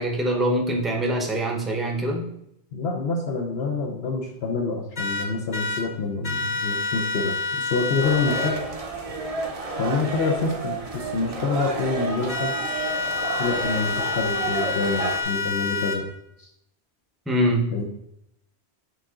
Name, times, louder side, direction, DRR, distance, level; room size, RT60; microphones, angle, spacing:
voice 1, 0.0-2.3 17.3-17.7, right 1 dB, ahead, 1 dB, 0.7 m, -24 dB
voice 2, 2.7-8.5 9.8-12.5 13.4-16.0 16.4-16.5 17.7-17.8, left 4 dB, 70° left, 0 dB, 1.0 m, -27 dB
sound 1, 5.0-5.8 6.2-8.5 12.3-16.0, left 4 dB, 40° left, 1.1 m, -28 dB
sound 2, 8.0-15.2, right 3 dB, 35° right, 0.7 m, -30 dB
7.1 x 3.8 x 3.7 m, 0.78 s
omnidirectional pair, 1.1 m